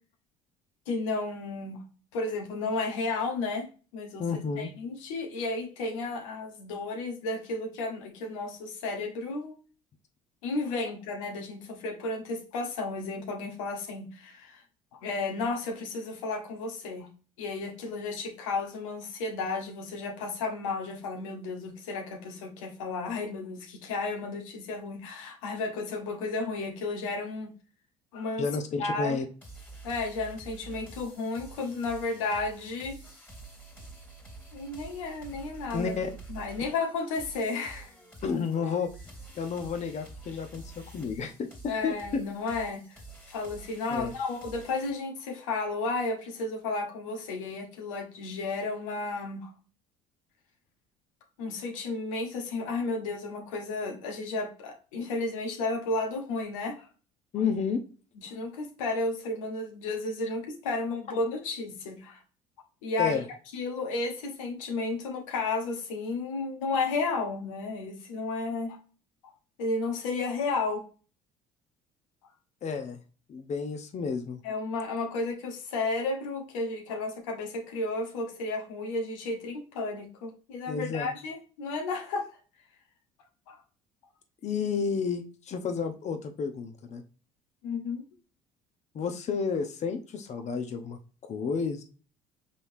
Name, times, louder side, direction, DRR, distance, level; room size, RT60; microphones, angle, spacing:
voice 1, 0.9-1.8 2.1-4.2 4.6-9.6 10.4-14.6 14.9-17.1 17.4-27.5 28.1-28.5 28.8-29.2 29.8-33.0 34.5-35.9 36.3-37.9 41.7-43.0 43.3-49.5 51.4-56.9 58.2-62.2 62.8-63.2 63.5-68.8 69.6-70.8 74.4-82.3 83.5-83.6 87.6-88.0, left 3 dB, 85° left, 3 dB, 1.0 m, -33 dB
voice 2, 4.2-4.7 28.4-29.2 35.7-36.1 38.2-38.9 39.4-42.2 43.9-44.1 57.3-57.8 63.0-63.2 72.6-73.0 73.3-74.4 80.7-81.1 84.4-87.0 88.9-91.8, left 5 dB, 45° left, 6 dB, 0.8 m, -31 dB
sound 1, 29.4-44.9, right 3 dB, 10° left, 2.0 m, -48 dB
5.4 x 3.5 x 2.6 m, 0.36 s
hypercardioid pair, 65°, 16 cm